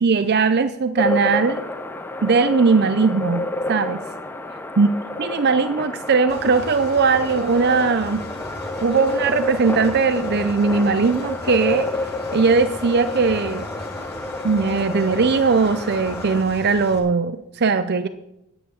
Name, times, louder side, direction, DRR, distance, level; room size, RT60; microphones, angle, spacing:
voice 1, 0.0-1.6 2.2-4.0 4.8-4.9 5.2-8.2 8.8-11.9 12.3-13.7 14.4-18.1, right 4 dB, 45° right, 10 dB, 0.6 m, -19 dB
sound 1, 1.0-16.4, left 2 dB, 10° left, 0.8 m, -29 dB
Engine, 6.3-17.0, left 1 dB, 45° left, 3.0 m, -39 dB
10.5 x 9.5 x 7.2 m, 0.88 s
head